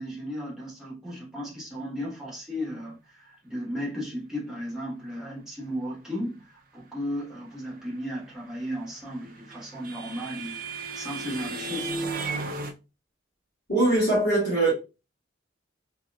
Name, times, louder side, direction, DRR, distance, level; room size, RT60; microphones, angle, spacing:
voice 1, 0.0-11.9, equal, 5° right, 1.2 m, -35 dB
sound 1, 8.8-12.7, right 3 dB, 45° right, 0.5 m, -34 dB
voice 2, 13.7-14.7, right 2 dB, 55° left, 2.0 m, -22 dB
3.6 x 2.9 x 2.3 m
head